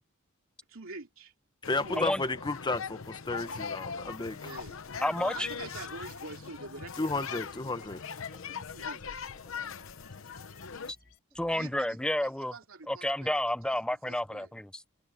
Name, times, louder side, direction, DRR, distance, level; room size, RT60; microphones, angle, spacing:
voice 1, 0.7-1.3 1.8-2.1 4.4-4.8 5.3-7.7 8.7-9.2 11.5-13.3 13.6-13.8 14.0-14.5, right 3 dB, 75° right, 2.9 m, -46 dB
sound 1, 1.6-10.9, left 6 dB, 70° left, 0.9 m, -41 dB
voice 2, 1.7-4.5 7.0-8.0, left 3 dB, 20° left, 1.0 m, -33 dB
sound 2, 3.2-11.2, left 4 dB, 45° left, 5.7 m, -60 dB
voice 3, 5.0-5.5 8.3-8.7 10.9-11.0 11.3-12.5 12.9-14.8, left 1 dB, 5° left, 0.6 m, -31 dB
head